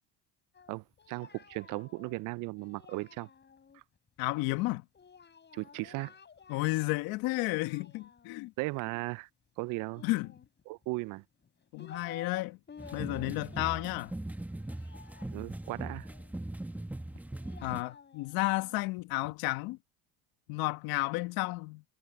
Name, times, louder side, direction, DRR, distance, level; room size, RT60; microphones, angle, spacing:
Singing, 0.5-3.8 4.9-7.0 7.3-8.5 9.9-10.9 11.4-12.4 12.7-16.3 17.1-19.4, left 6 dB, 30° left, 7.7 m, -53 dB
voice 1, 0.7-3.3 3.7-3.8 5.5-6.1 8.6-9.3 9.6-10.0 10.7-11.2 15.3-16.1, right 23 dB, 60° right, 0.5 m, -37 dB
voice 2, 4.2-4.8 6.5-8.5 10.0-10.3 11.7-12.6 12.9-14.1 17.6-19.8 20.5-21.8, left 21 dB, 75° left, 1.5 m, -32 dB
sound 1, 12.8-17.8, right 1 dB, 5° right, 1.1 m, -40 dB
supercardioid pair, 110°, 36 cm